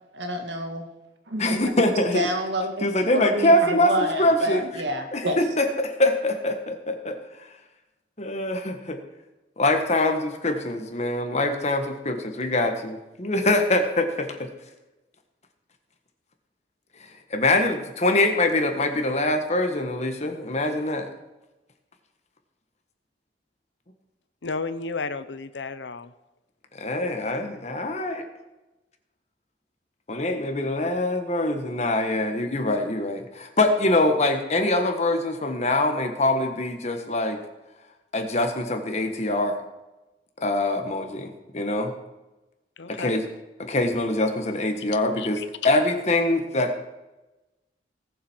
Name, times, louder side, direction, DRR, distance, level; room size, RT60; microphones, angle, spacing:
voice 1, 0.1-0.9 1.3-1.4 2.1-2.9 3.1-5.4, equal, 75° right, 5 dB, 1.8 m, -28 dB
voice 2, 1.4-2.3 2.8-4.7 5.1-7.2 8.2-9.0 9.6-14.5 17.3-21.1 26.7-28.2 30.1-37.4 38.1-39.6 40.4-41.9 42.9-43.3 43.6-45.4 45.6-46.8, left 1 dB, 40° left, 5 dB, 1.5 m, -24 dB
voice 3, 24.4-26.1 42.8-43.1 45.2-45.5, left 4 dB, 75° left, 13 dB, 0.7 m, -32 dB
18.5 x 7.3 x 4.6 m, 1.0 s
head